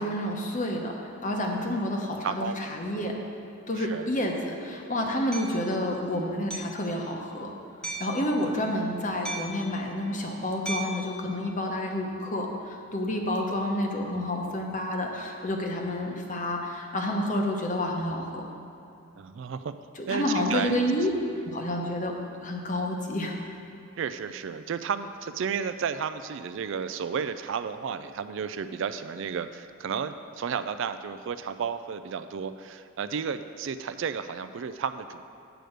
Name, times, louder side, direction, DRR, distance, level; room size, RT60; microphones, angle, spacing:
voice 1, 0.0-3.2 3.7-7.5 8.0-18.5 20.0-21.1 21.4-23.3, left 1 dB, 35° left, 1 dB, 1.0 m, -29 dB
voice 2, 2.2-2.7 3.8-4.1 8.6-8.7 19.2-19.7 20.1-20.7 24.0-35.2, right 6 dB, 60° right, 11 dB, 0.3 m, -32 dB
Hammer, 5.3-5.5 6.5-6.8 7.8-8.2 9.3-9.7 10.7-11.0, right 3 dB, 5° left, 0.8 m, -35 dB
9.0 x 5.0 x 7.9 m, 2.7 s
head